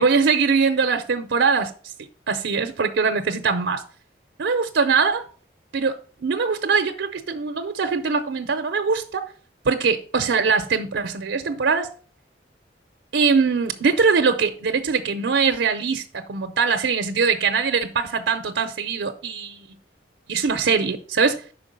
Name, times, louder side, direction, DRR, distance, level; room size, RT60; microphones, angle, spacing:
voice 1, 0.0-1.7 2.3-3.8 4.4-5.2 5.7-6.0 6.2-9.3 9.6-11.9 13.1-19.7 20.3-21.4, right 5 dB, 90° right, 0.6 m, -22 dB
5.8 x 4.4 x 5.3 m
head